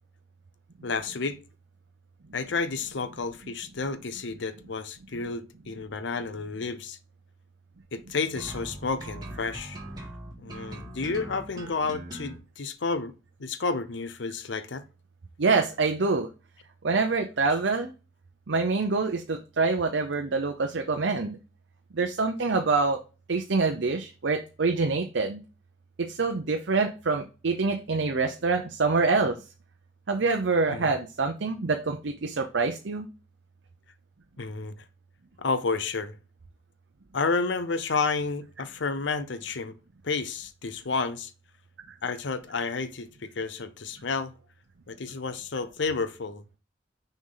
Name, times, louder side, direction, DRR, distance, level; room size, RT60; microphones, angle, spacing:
voice 1, 0.8-1.4 2.3-7.0 7.9-9.8 10.4-13.1 13.4-14.8 30.7-30.9 34.4-34.8 35.4-36.2 37.1-39.8 40.0-41.3 42.0-44.3 44.9-46.4, left 4 dB, 70° left, 0.7 m, -31 dB
sound 1, 8.4-12.4, right 1 dB, 20° right, 2.0 m, -40 dB
voice 2, 15.4-16.3 16.8-17.9 18.5-21.4 21.9-23.0 23.3-25.4 26.0-29.4 30.1-33.1, right 4 dB, 70° right, 0.6 m, -26 dB
6.3 x 4.3 x 3.8 m
head